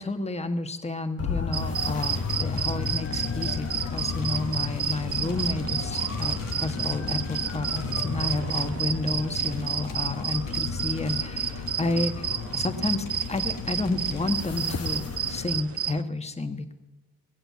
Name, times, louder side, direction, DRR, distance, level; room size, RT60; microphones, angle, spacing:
voice 1, 0.0-16.7, left 2 dB, 20° left, 8 dB, 1.3 m, -31 dB
sound 1, 1.2-15.6, left 5 dB, 45° left, 1.2 m, -33 dB
sound 2, 1.5-16.0, right 9 dB, 45° right, 0.6 m, -31 dB
sound 3, 1.9-14.5, left 6 dB, 65° left, 1.4 m, -49 dB
19.0 x 7.7 x 8.3 m, 1.1 s
supercardioid pair, 50°, 34 cm